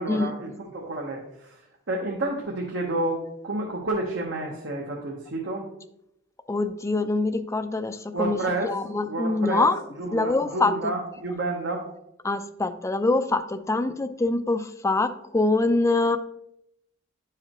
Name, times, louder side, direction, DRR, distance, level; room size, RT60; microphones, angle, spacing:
voice 1, 0.0-3.2 3.4-5.7 8.1-8.8 9.1-9.7 10.0-11.9, right 2 dB, 65° right, -1 dB, 1.0 m, -30 dB
voice 2, 6.5-9.8 10.1-10.9 12.2-16.2, left 2 dB, 15° left, 8 dB, 0.4 m, -24 dB
10.5 x 4.8 x 3.0 m, 0.81 s
head